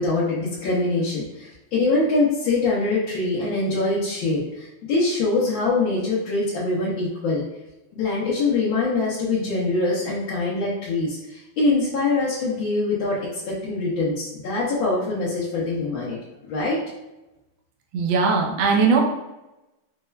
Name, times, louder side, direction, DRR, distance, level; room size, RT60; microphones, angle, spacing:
voice 1, 0.0-7.4 7.9-16.2 16.4-16.8, left 3 dB, 75° left, -9 dB, 1.5 m, -24 dB
voice 2, 17.9-19.0, right 5 dB, 75° right, 1 dB, 1.4 m, -19 dB
5.3 x 2.2 x 2.2 m, 0.96 s
omnidirectional pair, 2.2 m